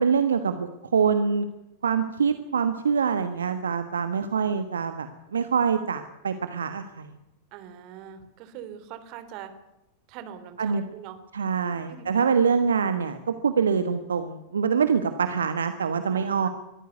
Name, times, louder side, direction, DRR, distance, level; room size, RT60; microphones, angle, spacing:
voice 1, 0.0-1.5 1.8-7.1 10.6-10.8 11.3-16.5, right 6 dB, 70° right, 10 dB, 1.3 m, -25 dB
voice 2, 7.5-9.5 10.1-11.2 11.7-12.1 16.1-16.5, right 9 dB, 45° right, 10 dB, 3.1 m, -42 dB
22.5 x 14.5 x 9.3 m, 0.93 s
figure-of-eight pair, 90°, 0 cm